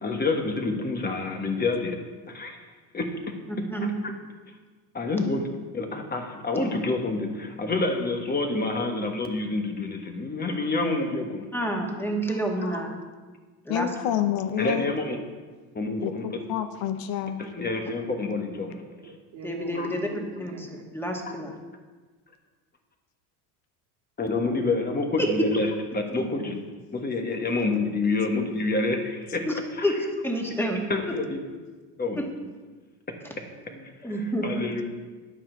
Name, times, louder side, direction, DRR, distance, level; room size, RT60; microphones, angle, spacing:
voice 1, 0.0-2.0 2.3-2.6 2.9-3.3 3.8-4.1 4.9-5.5 5.7-11.5 12.6-12.8 14.6-15.2 15.7-16.3 17.4-18.8 19.7-19.9 24.2-26.5 26.9-29.6 30.9-31.4 32.0-32.3 34.4-34.8, left 3 dB, 20° left, 3 dB, 1.4 m, -28 dB
voice 2, 11.5-12.9 13.7-13.9 19.4-20.1 20.4-20.7 20.9-21.6 25.2-25.3 26.1-26.2 29.5-30.8 32.2-32.3 34.0-34.7, equal, 5° left, 1 dB, 1.9 m, -29 dB
voice 3, 13.7-14.9 16.0-17.4, left 10 dB, 60° left, 9 dB, 0.9 m, -28 dB
voice 4, 18.8-20.9 33.6-33.9, right 3 dB, 65° right, 0 dB, 2.5 m, -42 dB
10.0 x 8.8 x 4.6 m, 1.4 s
supercardioid pair, 100°, 42 cm